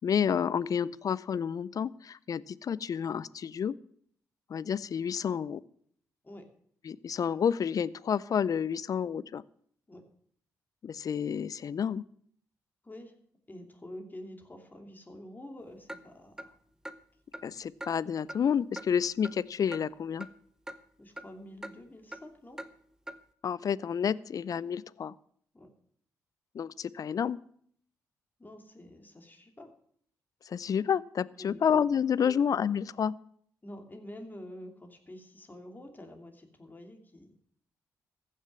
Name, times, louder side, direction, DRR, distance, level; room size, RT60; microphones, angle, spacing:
voice 1, 0.0-3.7 4.5-5.6 6.9-9.4 10.8-12.0 17.4-20.3 23.4-25.1 26.5-27.4 30.5-33.1, left 7 dB, 55° left, 21 dB, 0.5 m, -30 dB
voice 2, 12.8-13.2 13.5-16.6 21.0-22.6 25.5-25.7 28.4-29.7 31.4-31.6 32.2-32.5 33.6-37.4, left 1 dB, 25° left, 4 dB, 2.8 m, -47 dB
Clock, 15.9-16.0 16.4-16.5 16.9-17.0 17.3-17.5 17.8-17.9 18.3-18.4 18.8-18.9 19.2-19.4 19.7-19.8 20.2-20.3 20.7-20.8 21.2-21.3 21.6-21.8 22.1-22.2 22.6-22.7 23.1-23.2, right 1 dB, 10° right, 1.0 m, -41 dB
15.0 x 6.6 x 7.3 m, 0.62 s
hypercardioid pair, 45°, 7 cm